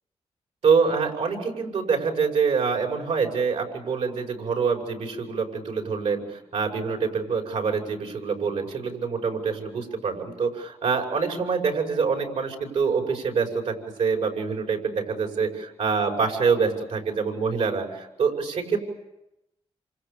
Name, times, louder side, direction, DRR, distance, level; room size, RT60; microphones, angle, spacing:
voice 1, 0.6-18.8, right 5 dB, 85° right, 2 dB, 6.0 m, -25 dB
28.0 x 27.5 x 6.9 m, 0.90 s
cardioid pair, 90°, 11 cm